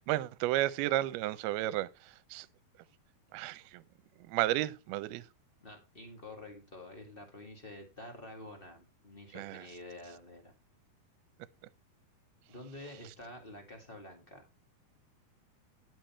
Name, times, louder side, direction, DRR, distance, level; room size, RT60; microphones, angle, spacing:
voice 1, 0.0-2.5 3.3-3.8 4.3-5.2 9.3-9.6, right 15 dB, 80° right, 2.6 m, -32 dB
voice 2, 5.6-10.5 12.5-14.5, left 1 dB, 30° left, 1.0 m, -48 dB
10.5 x 7.8 x 4.3 m
omnidirectional pair, 4.5 m